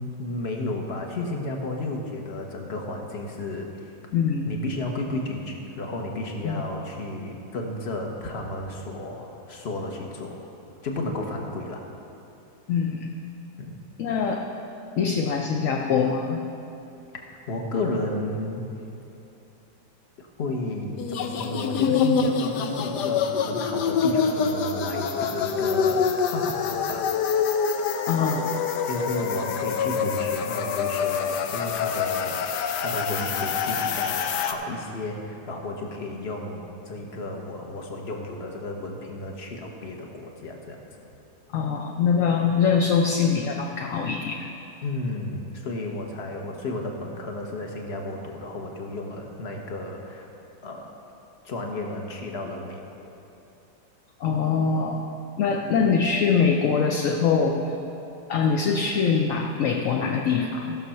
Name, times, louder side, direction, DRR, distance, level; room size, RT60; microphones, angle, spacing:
voice 1, 0.0-3.7 4.4-10.4 10.8-11.8 13.6-13.8 17.5-18.6 20.2-27.1 28.9-40.8 44.8-50.3 50.6-50.9 51.4-52.8, left 2 dB, 40° left, 1 dB, 1.3 m, -33 dB
voice 2, 4.1-4.5 6.4-6.6 12.7-13.1 14.0-14.4 15.0-16.4 28.1-28.5 41.5-44.5 54.2-55.0 55.4-57.6 58.3-60.8, left 6 dB, 60° left, 1 dB, 1.0 m, -23 dB
sound 1, 21.0-34.5, left 6 dB, 90° left, 1.3 m, -26 dB
15.0 x 6.4 x 5.7 m, 2.9 s
omnidirectional pair, 1.8 m